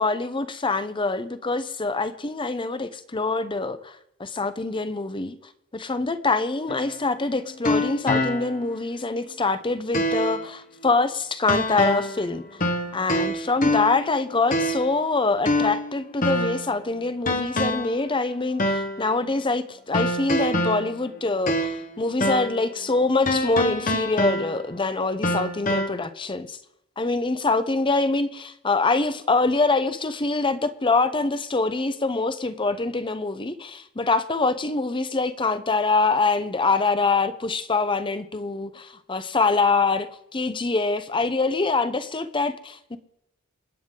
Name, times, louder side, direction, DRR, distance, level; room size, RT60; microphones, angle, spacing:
voice 1, 0.0-3.9 4.2-5.3 5.7-12.4 12.9-26.6 27.0-43.0, left 3 dB, 20° left, 0.7 m, -24 dB
sound 1, 6.7-8.7 9.2-9.3 9.9-10.5 11.5-12.2 12.6-14.1 14.5-15.0 15.4-16.7 17.3-18.0 18.6-19.0 19.9-21.9 22.2-22.6 23.3-24.8 25.2-25.9, left 1 dB, 40° left, 1.1 m, -25 dB
27.5 x 9.2 x 3.8 m
head